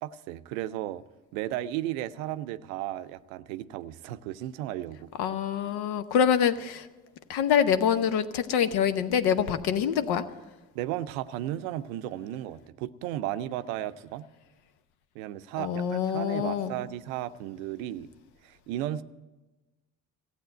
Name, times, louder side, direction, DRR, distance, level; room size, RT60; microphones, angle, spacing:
voice 1, 0.0-1.0 1.3-5.1 10.7-14.3 15.1-18.1 18.4-19.0, right 13 dB, 85° right, 13 dB, 0.6 m, -34 dB
voice 2, 5.2-6.9 7.3-10.2 15.6-16.7, left 8 dB, 70° left, 12 dB, 0.9 m, -25 dB
15.0 x 8.3 x 9.1 m, 1.1 s
hypercardioid pair, 50°, 40 cm